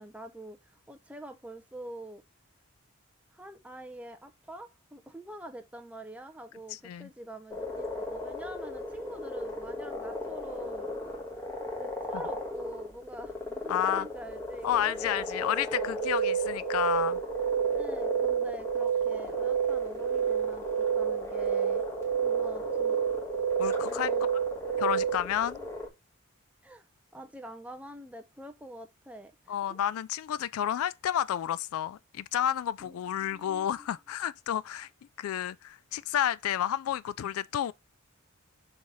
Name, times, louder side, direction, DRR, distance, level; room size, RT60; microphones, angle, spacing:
voice 1, 0.0-2.2 3.3-10.9 11.6-16.0 17.7-21.8 22.2-23.0 23.8-24.3 25.6-25.7 26.6-26.9 27.1-29.8 32.8-33.7, right 1 dB, 5° right, 0.6 m, -45 dB
sound 1, 7.5-25.9, left 2 dB, 15° left, 1.2 m, -37 dB
voice 2, 13.7-14.1 14.6-17.2 23.6-24.1 24.8-25.6 29.5-34.9 35.2-37.7, left 10 dB, 80° left, 0.3 m, -30 dB
sound 2, 15.7-25.2, right 8 dB, 85° right, 0.3 m, -29 dB
4.8 x 3.9 x 5.3 m
head